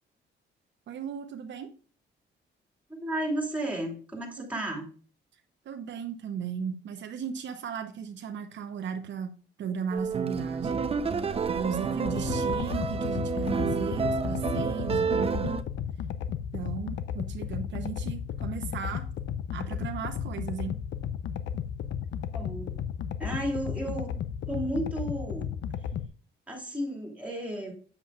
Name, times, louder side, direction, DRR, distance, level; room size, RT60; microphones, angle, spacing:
voice 1, 0.9-1.7 4.4-4.5 5.6-10.9 11.5-15.6 16.5-19.0 19.5-20.8, right 7 dB, 65° right, 6 dB, 0.8 m, -36 dB
voice 2, 2.9-4.9 22.3-22.8 23.2-24.1 24.5-25.5 26.5-27.7, right 1 dB, 5° right, 0 dB, 3.0 m, -33 dB
sound 1, 9.9-15.6, right 5 dB, 30° right, 0.6 m, -29 dB
sound 2, 12.1-26.1, left 8 dB, 70° left, 0.6 m, -34 dB
8.1 x 7.1 x 2.3 m, 0.40 s
cardioid pair, 90°, 20 cm